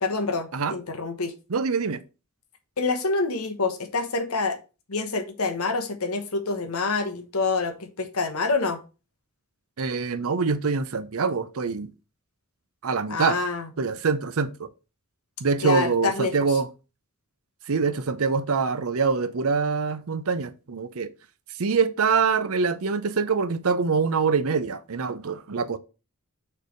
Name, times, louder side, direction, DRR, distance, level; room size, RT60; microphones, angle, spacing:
voice 1, 0.0-1.3 2.8-4.6 4.9-8.8 13.1-13.7 15.6-16.3, left 3 dB, 75° left, 1.1 m, -26 dB
voice 2, 1.5-2.0 9.8-11.9 12.8-13.4 13.8-14.7 15.4-16.7 17.7-21.1 21.6-25.8, right 5 dB, 75° right, 0.7 m, -24 dB
6.5 x 3.3 x 5.2 m
head